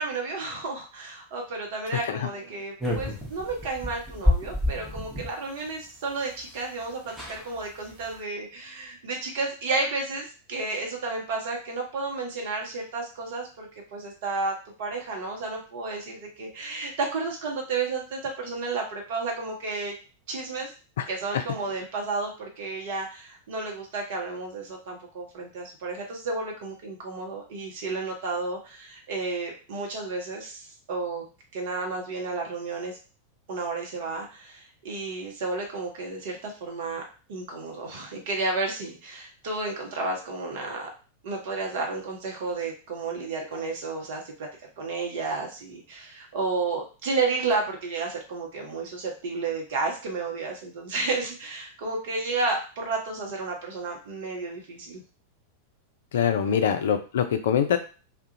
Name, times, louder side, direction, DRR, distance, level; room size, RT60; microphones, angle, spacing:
voice 1, 0.0-19.9 20.3-20.7 21.1-31.2 31.5-33.0 33.5-37.0 37.3-40.9 41.2-44.5 44.8-55.0 56.4-56.6, right 3 dB, 55° right, 1 dB, 0.7 m, -32 dB
sound 1, 2.8-5.3 6.5-6.6 6.8-6.9 7.1-7.4 7.9-8.2, left 1 dB, 5° right, 0.8 m, -28 dB
voice 2, 56.1-57.8, left 8 dB, 60° left, 8 dB, 0.3 m, -24 dB
2.4 x 2.1 x 2.7 m, 0.35 s
figure-of-eight pair, 90°, 0 cm